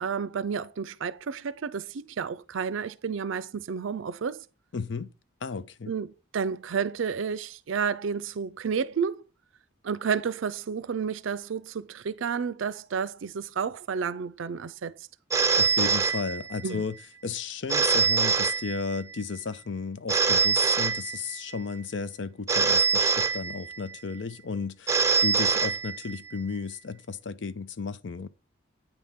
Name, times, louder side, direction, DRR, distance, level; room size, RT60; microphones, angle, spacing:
voice 1, 0.0-4.4 5.9-9.2 9.8-14.9 16.6-16.8, right 6 dB, 75° right, 0.4 m, -31 dB
voice 2, 4.7-5.1 5.4-5.9 15.6-17.0 17.2-28.3, left 5 dB, 65° left, 0.5 m, -34 dB
Telephone, 15.3-16.8 17.7-19.2 20.1-21.6 22.5-24.0 24.9-26.4, right 4 dB, 15° right, 0.6 m, -24 dB
9.1 x 3.6 x 5.7 m
head